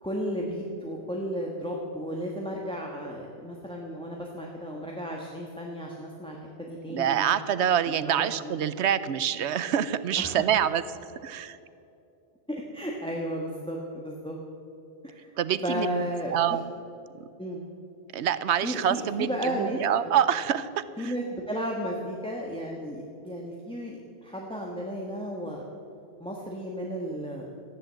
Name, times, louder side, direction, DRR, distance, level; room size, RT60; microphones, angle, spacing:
voice 1, 0.0-7.3 7.9-8.6 10.2-10.4 12.5-14.4 15.0-15.3 15.6-16.6 17.4-17.6 18.6-20.1 21.0-25.6 26.2-27.5, equal, 5° left, -2 dB, 1.3 m, -34 dB
voice 2, 6.9-10.8 11.2-11.6 15.4-16.0 16.3-16.6 18.1-20.7 21.0-21.1, right 9 dB, 90° right, 14 dB, 1.0 m, -26 dB
14.0 x 10.0 x 7.5 m, 2.8 s
omnidirectional pair, 1.1 m